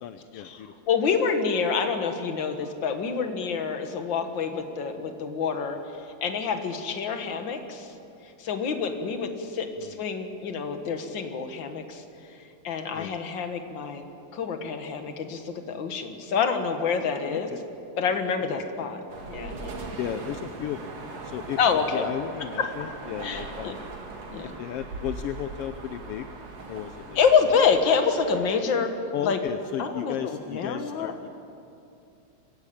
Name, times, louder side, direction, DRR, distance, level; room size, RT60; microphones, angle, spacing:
voice 1, 0.0-0.7 9.8-10.0 12.9-13.2 17.3-17.6 18.4-18.9 20.0-23.8 24.4-26.3 26.7-27.2 29.1-31.3, left 10 dB, 75° left, 8 dB, 1.4 m, -35 dB
voice 2, 0.9-5.8 6.2-7.9 8.4-12.0 12.6-14.0 14.3-17.5 18.0-19.0 19.3-19.8 21.6-22.0 22.6-22.7 23.2-23.7 24.3-24.6 27.2-29.0 29.2-29.4 29.8-31.1, left 6 dB, 45° left, 6 dB, 1.9 m, -27 dB
sound 1, 19.1-28.4, right 3 dB, 60° right, 3.1 m, -40 dB
24.5 x 15.5 x 8.6 m, 2.6 s
omnidirectional pair, 3.4 m